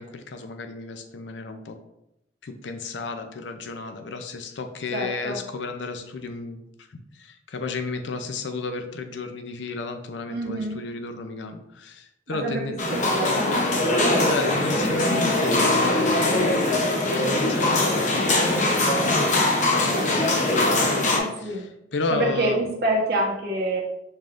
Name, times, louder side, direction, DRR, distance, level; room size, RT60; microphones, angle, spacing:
voice 1, 0.0-1.8 2.4-12.8 14.2-16.6 17.2-18.3 18.8-19.2 19.7-22.6, left 3 dB, 85° left, 6 dB, 0.5 m, -33 dB
voice 2, 4.9-5.4 10.3-10.8 12.3-12.6 12.9-13.5 19.9-20.3 21.2-21.6 22.1-23.8, right 1 dB, 60° right, -1 dB, 1.1 m, -27 dB
sound 1, 12.8-21.2, left 2 dB, 45° left, 0.8 m, -22 dB
5.4 x 3.5 x 2.5 m, 0.86 s
head